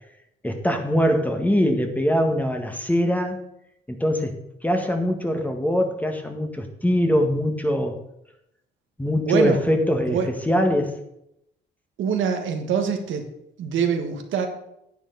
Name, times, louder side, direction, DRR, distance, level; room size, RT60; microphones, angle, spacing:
voice 1, 0.4-3.4 3.9-4.3 4.6-8.0 9.0-10.2 10.5-11.0, equal, 10° left, 4 dB, 1.6 m, -22 dB
voice 2, 9.2-9.6 10.1-10.3 12.0-13.2 13.6-14.5, right 7 dB, 80° right, 5 dB, 1.5 m, -24 dB
10.0 x 9.1 x 4.0 m, 0.81 s
cardioid pair, 90°, 20 cm